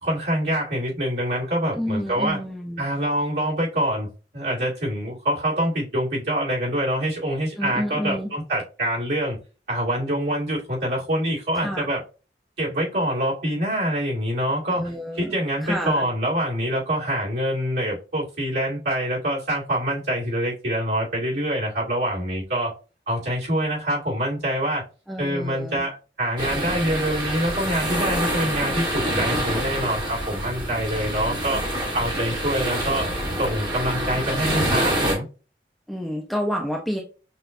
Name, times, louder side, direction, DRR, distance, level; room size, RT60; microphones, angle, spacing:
voice 1, 0.0-2.4 2.8-9.4 9.7-12.0 12.6-22.7 23.1-24.8 25.2-31.6 31.9-33.1 33.4-35.3, right 1 dB, 70° right, 2.2 m, -25 dB
voice 2, 1.7-2.8 7.6-8.3 11.6-11.9 14.7-15.3 15.6-16.1 25.1-25.8 35.9-37.0, equal, ahead, 0.4 m, -29 dB
sound 1, 26.4-35.1, right 1 dB, 25° right, 1.2 m, -26 dB
5.8 x 2.3 x 2.5 m
head